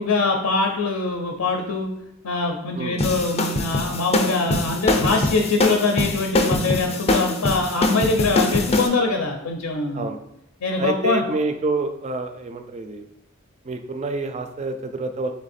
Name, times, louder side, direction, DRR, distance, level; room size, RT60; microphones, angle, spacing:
voice 1, 0.0-1.9 2.2-10.1 10.6-11.2, left 3 dB, 75° left, 3 dB, 0.5 m, -23 dB
sound 1, 3.0-8.9, left 2 dB, 30° left, 0.5 m, -22 dB
voice 2, 10.8-13.1 13.6-15.3, right 3 dB, 30° right, 7 dB, 0.4 m, -27 dB
3.4 x 3.1 x 4.2 m, 0.81 s
head